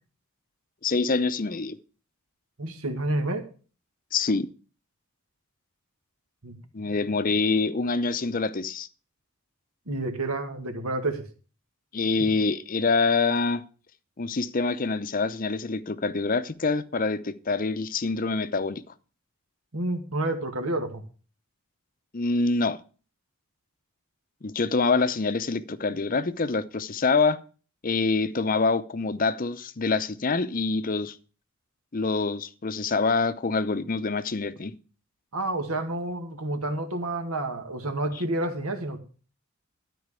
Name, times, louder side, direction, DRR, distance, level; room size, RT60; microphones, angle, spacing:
voice 1, 0.8-1.8 4.1-4.5 6.7-8.9 11.9-13.6 14.2-18.8 22.1-22.8 24.4-27.4 27.8-31.2 31.9-34.7, left 4 dB, 40° left, 0.7 m, -25 dB
voice 2, 2.6-3.5 6.4-6.5 9.9-11.3 12.2-12.3 19.7-21.0 35.3-39.0, right 2 dB, 85° right, 1.9 m, -29 dB
13.0 x 4.7 x 8.2 m
head